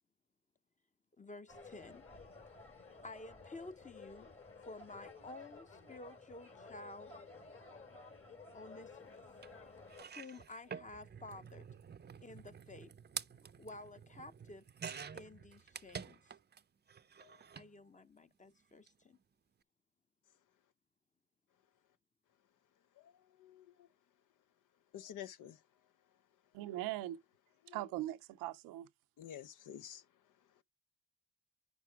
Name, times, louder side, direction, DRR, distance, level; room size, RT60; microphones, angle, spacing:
voice 1, 1.2-2.0 3.0-4.3 4.6-7.1 8.5-9.2 10.1-11.7 12.2-12.9 13.4-14.6 15.1-16.2 17.5-19.2, left 2 dB, 20° left, 0.9 m, -52 dB
sound 1, 1.5-10.0, left 3 dB, 40° left, 3.0 m, -54 dB
sound 2, 9.4-9.5 9.9-16.6 16.9-17.7 18.7-18.9 19.1-19.2, right 6 dB, 30° right, 0.5 m, -49 dB
voice 2, 23.4-23.9 24.9-25.6 27.6-27.8 29.2-30.0, left 10 dB, 70° left, 0.6 m, -50 dB
voice 3, 26.5-27.2 27.7-28.9, right 15 dB, 90° right, 0.6 m, -40 dB
9.2 x 6.1 x 3.4 m
supercardioid pair, 40°, 33 cm